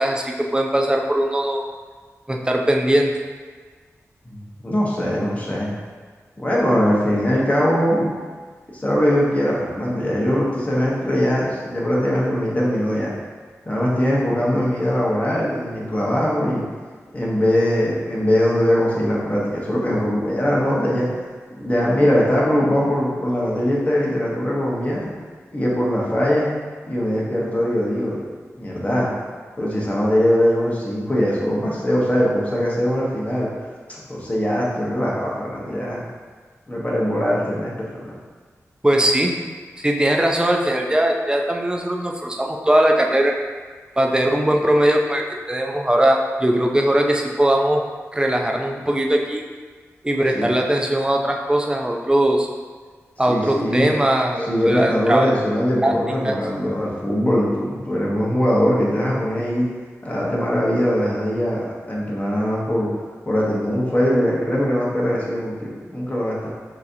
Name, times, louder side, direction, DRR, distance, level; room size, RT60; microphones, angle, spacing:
voice 1, 0.0-1.6 2.3-3.1 38.8-39.4 39.8-43.3 44.0-47.8 48.1-49.4 50.0-52.5 53.2-55.3 55.8-55.9 56.2-56.3, right 1 dB, 15° right, 1 dB, 0.6 m, -20 dB
voice 2, 4.2-5.7 6.4-8.1 8.7-13.1 13.6-16.6 17.1-21.1 21.6-25.1 25.5-26.5 26.8-28.2 28.6-29.1 29.6-33.5 34.1-36.0 36.7-38.2 50.3-50.5 53.3-53.9 54.5-59.7 60.0-62.9 63.2-66.5, equal, 25° left, -5 dB, 1.2 m, -21 dB
6.0 x 2.9 x 2.7 m, 1.5 s
cardioid pair, 55°, 6 cm